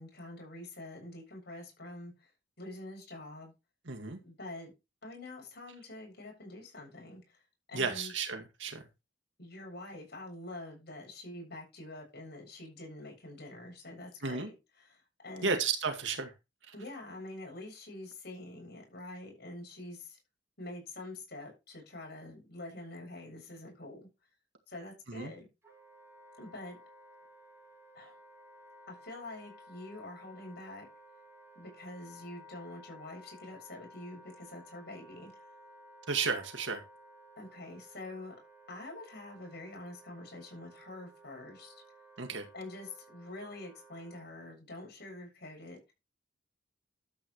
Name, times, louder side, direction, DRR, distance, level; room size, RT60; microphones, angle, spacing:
voice 1, 0.0-2.3 2.6-3.5 4.2-4.7 5.0-7.4 7.7-8.1 9.4-15.6 16.7-20.2 20.6-24.1 24.7-25.5 26.4-26.8 27.9-28.1 28.9-30.9 31.5-35.5 37.4-38.4 38.7-41.7 42.5-45.9, left 2 dB, 60° left, 7.5 m, -46 dB
voice 2, 3.9-4.2 7.7-8.8 14.2-14.5 15.4-16.3 25.1-25.3 36.1-36.8 42.2-42.4, right 4 dB, 75° right, 2.1 m, -33 dB
Wind instrument woodwind instrument, 25.6-44.3, equal, 15° right, 6.6 m, -56 dB
12.5 x 8.7 x 3.2 m
head